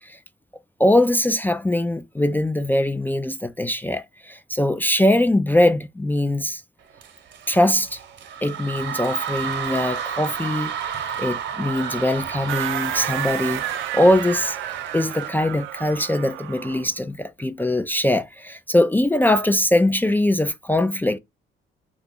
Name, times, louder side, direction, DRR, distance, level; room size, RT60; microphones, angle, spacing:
voice 1, 0.8-6.6 7.5-8.0 8.4-13.6 13.9-21.2, left 1 dB, 10° left, 0.3 m, -21 dB
scool assembly noise, 7.0-15.3, right 8 dB, 65° right, 0.9 m, -31 dB
sound 1, 12.5-16.9, right 12 dB, 85° right, 0.5 m, -31 dB
2.8 x 2.4 x 3.8 m
cardioid pair, 90°, 20 cm